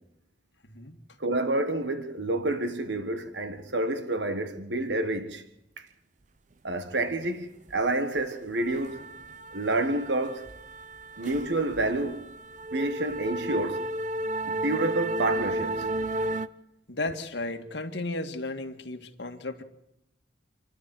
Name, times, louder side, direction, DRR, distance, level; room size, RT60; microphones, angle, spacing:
voice 1, 0.6-1.0 16.9-19.6, left 2 dB, 70° left, 2.0 m, -34 dB
voice 2, 1.2-5.4 6.6-9.0 9.5-10.4 11.2-12.2 12.7-13.8 14.5-15.9, right 2 dB, 75° right, 1.6 m, -28 dB
sound 1, 7.7-16.5, right 1 dB, 45° right, 0.8 m, -33 dB
28.5 x 12.0 x 7.8 m
head